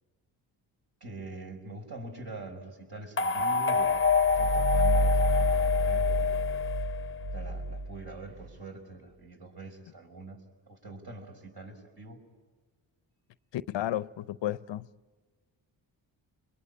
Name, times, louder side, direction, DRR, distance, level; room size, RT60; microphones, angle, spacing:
voice 1, 1.0-4.0 4.4-6.4 7.3-12.2, right 2 dB, 50° right, 5.7 m, -44 dB
sound 1, 3.2-7.4, left 5 dB, 25° left, 0.8 m, -27 dB
sound 2, 3.8-8.5, right 2 dB, 80° right, 1.9 m, -30 dB
voice 2, 13.5-14.9, left 12 dB, 65° left, 0.7 m, -32 dB
23.0 x 22.0 x 9.9 m
supercardioid pair, 50°, 47 cm